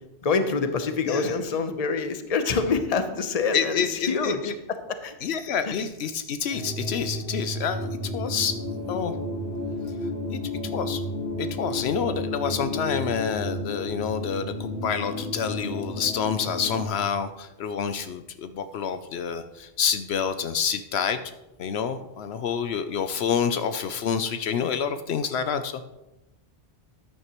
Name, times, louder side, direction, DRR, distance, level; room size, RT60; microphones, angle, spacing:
voice 1, 0.2-4.4 4.7-5.1 5.7-5.8, left 4 dB, 40° left, 9 dB, 0.8 m, -26 dB
voice 2, 1.1-1.4 3.5-4.5 5.2-7.9 8.1-8.6 8.9-9.2 10.3-10.4 10.7-11.0 11.4-21.2 21.6-25.8, left 7 dB, 75° left, 10 dB, 0.9 m, -28 dB
sound 1, 6.5-16.8, left 1 dB, 55° left, 1.8 m, -32 dB
13.5 x 9.7 x 3.0 m, 0.99 s
omnidirectional pair, 1.1 m